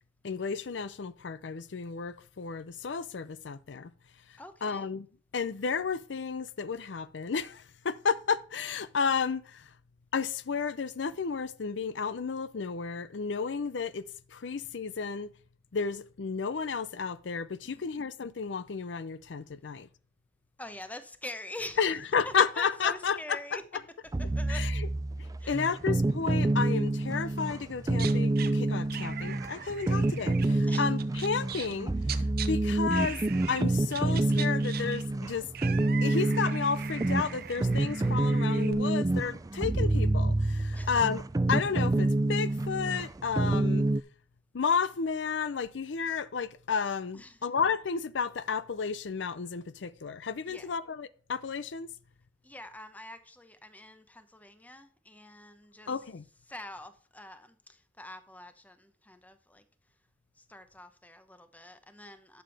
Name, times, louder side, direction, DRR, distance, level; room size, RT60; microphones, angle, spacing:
voice 1, 0.2-3.9 4.6-5.1 5.3-9.6 10.1-14.0 14.3-15.3 15.7-19.9 21.8-23.6 24.5-24.9 25.5-31.9 32.5-33.2 33.5-35.5 36.0-41.2 41.5-43.9 44.5-51.9 55.9-56.2, left 5 dB, 75° left, 0.5 m, -32 dB
voice 2, 4.4-4.9 17.6-17.9 20.6-21.8 22.2-23.6 24.3-24.7 25.4-25.6 30.7-30.8 40.7-40.9 47.1-47.4 50.5-50.7 52.4-55.9 56.5-59.6 60.5-62.4, left 1 dB, 10° left, 0.9 m, -45 dB
sound 1, 24.1-44.0, right 2 dB, 20° right, 0.4 m, -28 dB
sound 2, 27.9-28.5 28.9-32.5 32.9-33.6 33.9-38.7, right 9 dB, 55° right, 0.8 m, -41 dB
11.0 x 7.1 x 3.4 m
head